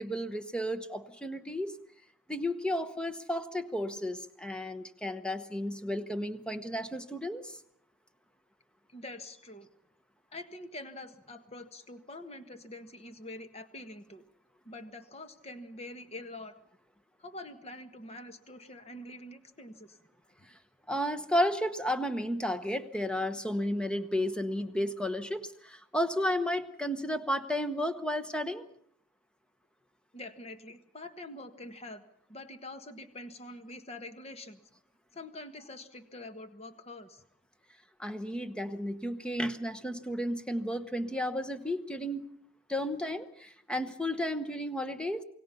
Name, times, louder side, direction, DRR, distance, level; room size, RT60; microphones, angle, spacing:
voice 1, 0.0-1.7 2.3-7.6 20.9-28.6 38.0-42.3 42.7-45.2, equal, 5° left, 10 dB, 1.0 m, -33 dB
voice 2, 8.9-9.7 10.3-14.2 14.6-16.5 17.2-20.0 20.4-20.5 30.1-32.0 32.3-34.6 35.1-37.2, left 2 dB, 30° left, 8 dB, 1.5 m, -45 dB
28.5 x 18.5 x 5.7 m, 0.66 s
head